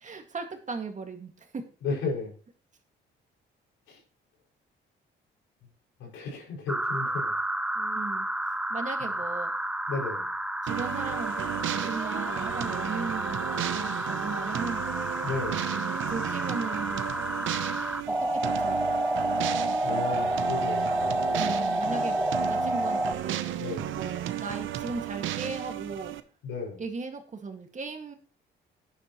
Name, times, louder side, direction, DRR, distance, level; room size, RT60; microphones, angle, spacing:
voice 1, 0.0-1.6 7.8-8.3 8.7-9.5 10.6-15.2 15.7-17.3 18.1-18.8 19.2-19.4 21.4-23.5 23.9-26.1 26.8-28.1, right 4 dB, 40° right, 4 dB, 2.1 m, -37 dB
voice 2, 1.8-2.3 3.9-4.0 6.0-7.3 9.9-10.3 15.2-15.7 19.8-21.3 23.6-23.9 26.4-26.8, left 4 dB, 90° left, -2 dB, 5.8 m, -34 dB
sound 1, 6.7-23.1, right 1 dB, 5° right, 0.6 m, -30 dB
sound 2, 10.7-26.2, right 12 dB, 80° right, 0.8 m, -34 dB
11.0 x 10.5 x 3.1 m, 0.39 s
cardioid pair, 90°, 20 cm